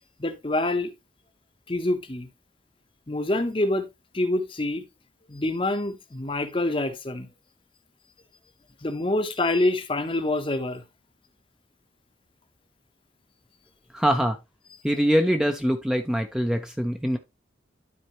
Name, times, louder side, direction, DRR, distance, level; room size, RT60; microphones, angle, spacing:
voice 1, 0.2-0.9 1.7-2.3 3.1-3.9 4.1-4.8 5.3-7.3 8.8-10.8, left 2 dB, 30° left, 0.9 m, -26 dB
voice 2, 13.9-14.4 14.8-17.2, equal, 5° right, 0.7 m, -23 dB
12.5 x 4.3 x 3.0 m
head